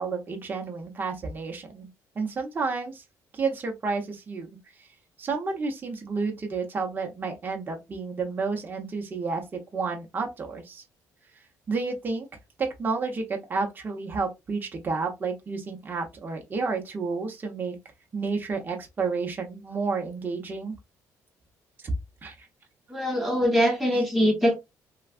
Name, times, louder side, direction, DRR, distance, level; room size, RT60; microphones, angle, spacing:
voice 1, 0.0-1.9 2.1-3.0 3.3-4.9 5.2-10.8 11.7-12.3 12.6-17.8 18.1-20.7 21.8-21.9 22.2-22.5, right 4 dB, 30° right, 0.8 m, -31 dB
voice 2, 22.9-24.5, equal, ahead, 1.1 m, -22 dB
3.3 x 2.4 x 2.4 m
cardioid pair, 120°, 7 cm